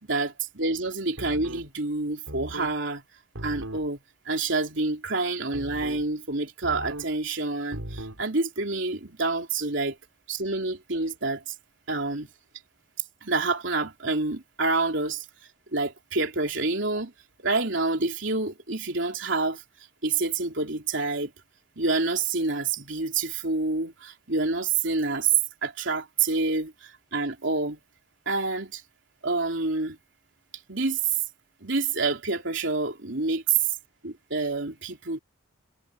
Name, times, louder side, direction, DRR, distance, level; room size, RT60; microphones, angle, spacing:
voice 1, 0.0-3.0 3.4-4.0 4.2-10.0 10.3-11.5 11.9-12.3 13.2-15.2 15.7-17.1 17.4-19.6 20.0-21.3 21.7-25.3 25.6-27.8 28.2-28.8 29.2-30.0 30.7-31.0 31.6-33.6 34.0-35.2, right 3 dB, 60° right, 3.4 m, -27 dB
sound 1, 1.2-1.7 2.3-2.7 3.3-3.9 5.5-6.1 6.6-7.1 7.7-8.2, right 1 dB, 85° right, 6.3 m, -38 dB
head